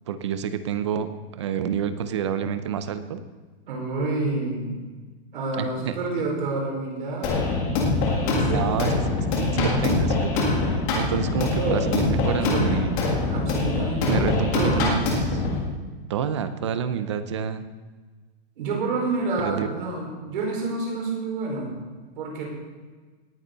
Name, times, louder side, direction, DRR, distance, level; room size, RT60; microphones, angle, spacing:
voice 1, 0.1-1.1 1.3-3.2 5.6-6.0 8.5-8.9 9.3-13.0 14.1-15.5 16.1-17.6 19.4-19.7, right 8 dB, 30° right, 11 dB, 0.6 m, -28 dB
voice 2, 3.7-4.8 5.3-8.9 11.5-12.0 12.2-12.7 13.3-14.9 18.6-21.8 22.2-22.4, right 3 dB, 55° right, -2 dB, 5.1 m, -29 dB
sound 1, 7.2-15.6, left 3 dB, 20° left, 1.7 m, -24 dB
18.5 x 10.0 x 4.0 m, 1.4 s
hypercardioid pair, 180°, 32 cm